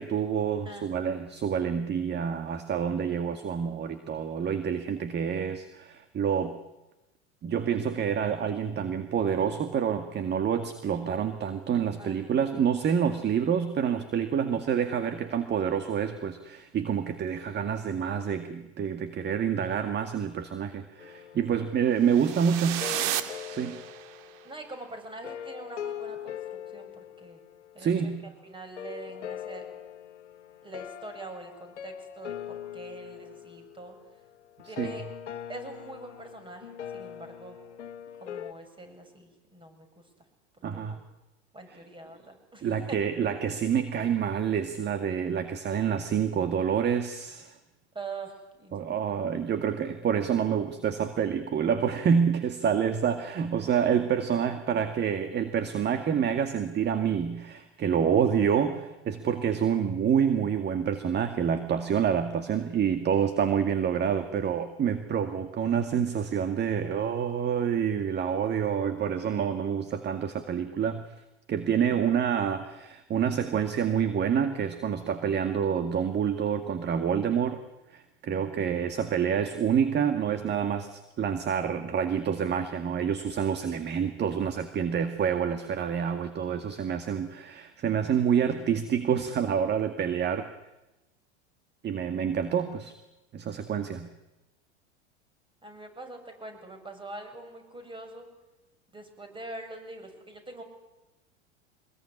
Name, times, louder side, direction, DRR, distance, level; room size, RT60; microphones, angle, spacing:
voice 1, 0.0-6.5 7.4-22.9 23.5-23.8 27.8-28.2 34.8-35.0 40.6-41.0 42.6-47.5 48.7-71.0 71.5-77.6 77.9-90.5 91.8-92.9 93.3-94.1, right 7 dB, 30° right, 9 dB, 2.1 m, -27 dB
voice 2, 0.7-1.2 12.0-12.4 24.4-27.4 27.7-28.1 28.4-29.7 30.6-34.0 34.7-35.1 35.5-37.6 38.2-40.0 40.7-41.0 41.5-43.0 47.9-49.2 62.5-62.8 95.6-98.3 98.9-100.6, right 2 dB, 15° right, 6 dB, 7.6 m, -44 dB
sound 1, 21.0-28.2 28.8-38.5, left 9 dB, 80° left, 1.6 m, -42 dB
sound 2, 22.1-24.3, right 12 dB, 50° right, 2.3 m, -33 dB
25.0 x 21.5 x 10.0 m, 0.99 s
hypercardioid pair, 90°, 35 cm